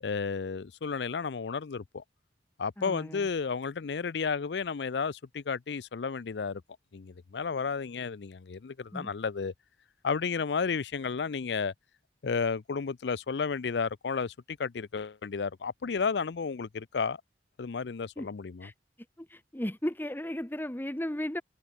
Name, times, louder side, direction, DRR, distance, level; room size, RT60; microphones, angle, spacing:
voice 1, 0.0-2.0 2.6-6.6 6.9-9.5 10.0-11.7 12.2-17.2 17.6-18.7, left 5 dB, 70° left, 0.5 m, -32 dB
voice 2, 2.8-3.3 8.9-9.1 18.2-18.3 18.6-18.7 19.2-21.4, left 1 dB, 10° left, 1.1 m, -35 dB
head